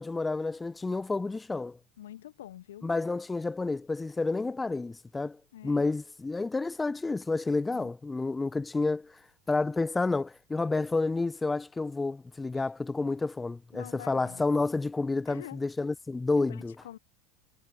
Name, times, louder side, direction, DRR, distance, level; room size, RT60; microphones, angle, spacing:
voice 1, 0.0-1.8 2.8-5.4 5.6-9.1 9.5-16.7, left 3 dB, 15° left, 1.2 m, -30 dB
voice 2, 2.0-2.9 5.5-5.8 7.7-7.9 13.7-14.4 15.3-15.6 16.4-17.0, left 12 dB, 70° left, 1.2 m, -46 dB
figure-of-eight pair, 75°, 0 cm